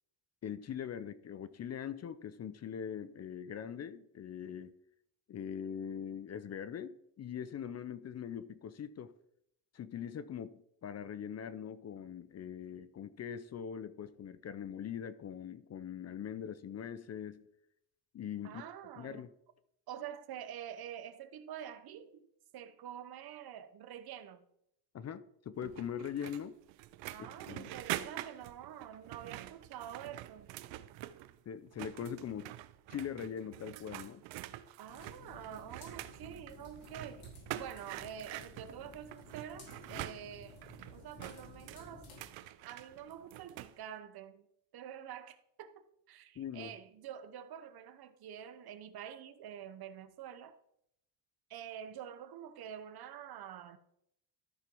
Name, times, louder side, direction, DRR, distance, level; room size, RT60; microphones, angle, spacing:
voice 1, 0.4-4.7 5.3-9.1 9.7-17.5 18.1-18.6 19.0-19.3 24.9-26.6 27.4-27.7 31.5-32.6 32.9-34.2 39.9-40.1 46.4-46.7, left 8 dB, 35° left, 0.6 m, -42 dB
voice 2, 18.4-19.2 19.9-22.3 22.5-24.4 27.1-30.6 34.8-37.2 37.5-40.6 40.9-42.1 42.6-44.5 44.7-50.6 51.5-53.8, right 9 dB, 55° right, 1.0 m, -47 dB
sound 1, 25.6-31.4 31.7-43.8, right 15 dB, 80° right, 0.7 m, -46 dB
sound 2, 34.9-42.2, left 3 dB, 55° left, 4.3 m, -55 dB
13.5 x 4.5 x 5.3 m
cardioid pair, 115°, 44 cm